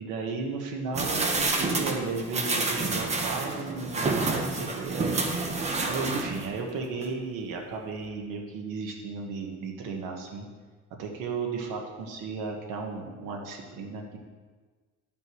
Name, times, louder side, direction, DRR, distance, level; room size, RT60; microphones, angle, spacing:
voice 1, 0.0-5.2 5.8-10.5 11.0-14.2, right 4 dB, 75° right, 1 dB, 1.4 m, -34 dB
sound 1, 0.9-6.6 7.0-7.1, right 3 dB, 20° right, 0.8 m, -29 dB
11.5 x 9.0 x 3.1 m, 1.4 s
cardioid pair, 165°, 32 cm